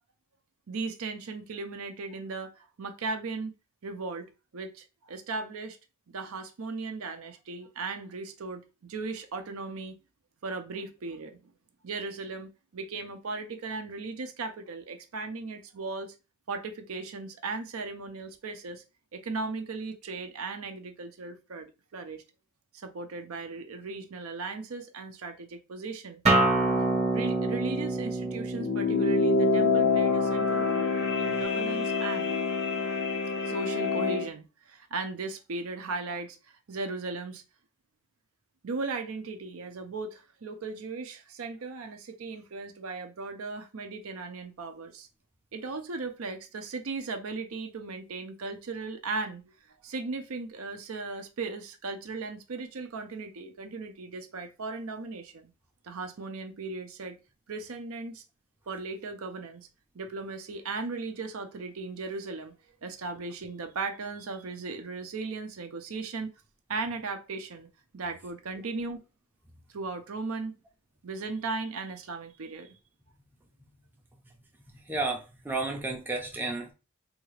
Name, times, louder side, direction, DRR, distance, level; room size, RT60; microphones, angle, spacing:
voice 1, 0.7-3.5 3.8-5.8 6.1-10.0 10.4-11.5 11.8-16.1 16.5-18.8 19.1-22.2 22.7-26.2 27.1-32.3 33.5-36.4 36.7-37.4 38.6-45.1 45.5-49.5 49.8-55.5 55.8-57.2 57.5-58.2 58.7-59.7 59.9-62.5 62.8-66.3 66.7-67.7 67.9-69.0 69.7-70.6 71.0-72.8, right 3 dB, 65° right, 0.6 m, -37 dB
Acoustic guitar, 26.3-31.4, right 2 dB, 30° right, 0.9 m, -28 dB
sound 1, 28.5-34.3, left 4 dB, 60° left, 0.6 m, -26 dB
voice 2, 74.7-76.7, right 3 dB, 10° right, 0.5 m, -32 dB
3.5 x 2.4 x 3.2 m
head